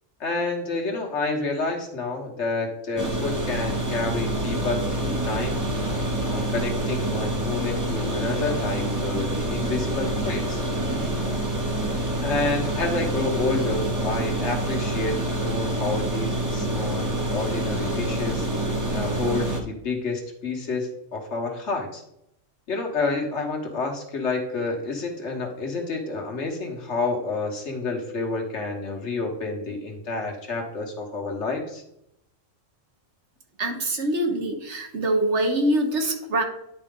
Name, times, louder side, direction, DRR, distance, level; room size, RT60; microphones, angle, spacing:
voice 1, 0.2-5.6 6.2-10.6 12.2-18.5 18.9-22.0 22.7-31.8, left 3 dB, 65° left, 2 dB, 1.5 m, -29 dB
sound 1, 3.0-19.6, right 1 dB, 15° right, 0.8 m, -27 dB
voice 2, 33.6-36.4, right 1 dB, 65° right, 3 dB, 1.4 m, -24 dB
10.0 x 4.4 x 3.7 m, 0.80 s
omnidirectional pair, 1.3 m